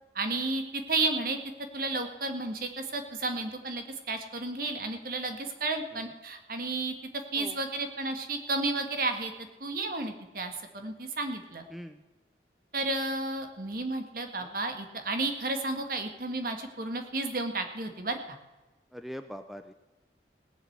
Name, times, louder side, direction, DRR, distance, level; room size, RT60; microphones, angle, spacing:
voice 1, 0.2-1.4 1.7-11.6 12.7-18.4, right 2 dB, 55° right, 6 dB, 1.8 m, -32 dB
voice 2, 11.7-12.0 14.4-14.6 18.9-19.7, equal, ahead, 9 dB, 0.5 m, -42 dB
17.5 x 8.0 x 8.0 m, 1.1 s
head